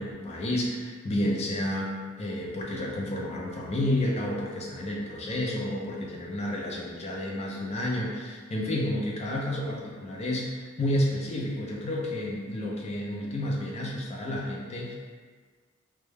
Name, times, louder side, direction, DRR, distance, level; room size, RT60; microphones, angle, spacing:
voice 1, 0.0-15.0, left 1 dB, 30° left, -2 dB, 0.4 m, -30 dB
2.2 x 2.0 x 3.2 m, 1.5 s
head